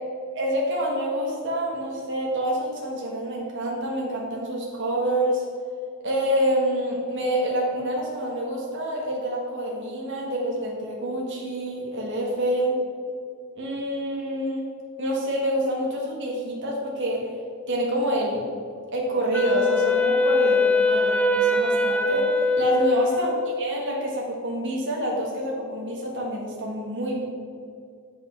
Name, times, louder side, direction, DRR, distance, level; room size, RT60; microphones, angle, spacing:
voice 1, 0.3-5.4 6.0-12.8 13.5-14.6 15.0-17.3 17.7-18.5 18.9-27.3, right 1 dB, 60° right, -2 dB, 1.7 m, -27 dB
Wind instrument woodwind instrument, 19.3-23.6, left 2 dB, 5° left, 0.5 m, -22 dB
7.9 x 5.5 x 5.8 m, 2.3 s
head